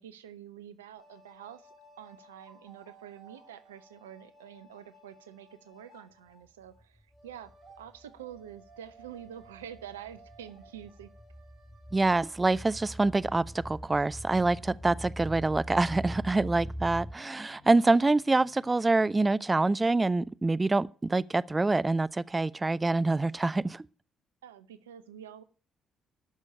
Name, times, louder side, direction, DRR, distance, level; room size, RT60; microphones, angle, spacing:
voice 1, 0.0-11.1 24.4-25.4, right 10 dB, 85° right, 0.8 m, -47 dB
sound 1, 1.0-6.8 7.1-13.1, right 2 dB, 55° right, 6.7 m, -58 dB
sound 2, 6.6-7.5 7.8-17.1, equal, 25° left, 2.0 m, -42 dB
voice 2, 11.9-23.8, right 3 dB, 20° right, 0.5 m, -26 dB
Piano, 13.2-20.0, left 5 dB, 55° left, 4.6 m, -59 dB
12.5 x 6.4 x 9.8 m
hypercardioid pair, 50°, 0 cm